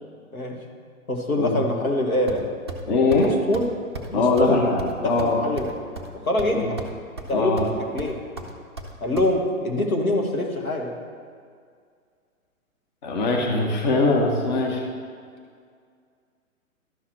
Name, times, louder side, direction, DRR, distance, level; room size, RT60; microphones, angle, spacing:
voice 1, 1.1-2.5 3.2-3.6 4.1-4.6 5.0-5.7 6.1-6.8 7.3-8.2 9.0-10.9, left 1 dB, 80° left, 1 dB, 1.5 m, -25 dB
sound 1, 2.3-2.8 3.1-3.3 3.5-3.7 3.9-4.1 4.4-4.5 4.8-6.1 6.4-6.9 7.2-7.7 8.0-9.3, right 2 dB, 20° right, 0.4 m, -35 dB
voice 2, 2.9-3.3 4.1-5.4 6.5-6.7 7.3-7.7 13.0-14.8, left 3 dB, 30° left, 1 dB, 0.8 m, -21 dB
12.5 x 5.6 x 3.1 m, 2.1 s
figure-of-eight pair, 125°, 43 cm